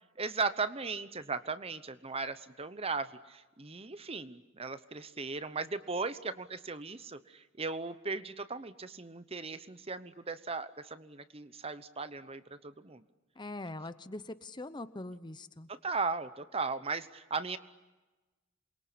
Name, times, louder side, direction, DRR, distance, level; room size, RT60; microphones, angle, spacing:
voice 1, 0.2-13.0 15.7-17.6, right 4 dB, 30° right, 13 dB, 0.9 m, -37 dB
voice 2, 13.4-15.7, left 2 dB, 20° left, 12 dB, 0.8 m, -42 dB
27.5 x 23.0 x 8.5 m, 1.2 s
head